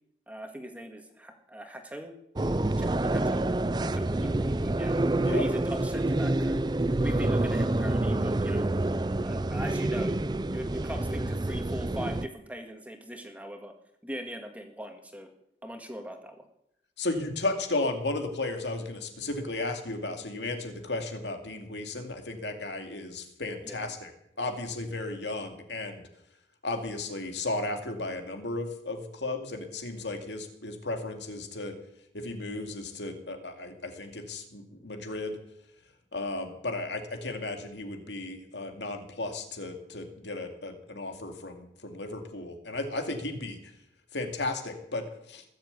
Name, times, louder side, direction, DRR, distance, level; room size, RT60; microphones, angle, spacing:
voice 1, 0.3-4.9 5.3-6.7 7.0-8.7 9.1-13.7 14.0-15.3 15.6-16.5 23.6-24.0, equal, 10° right, 4 dB, 1.8 m, -40 dB
sound 1, 2.4-12.3, right 2 dB, 25° right, 0.5 m, -27 dB
voice 2, 17.0-24.1 24.4-26.0 26.6-31.7 32.1-35.4 36.1-43.6 44.1-45.4, left 2 dB, 85° left, 5 dB, 2.4 m, -34 dB
20.5 x 7.5 x 8.4 m, 0.78 s
head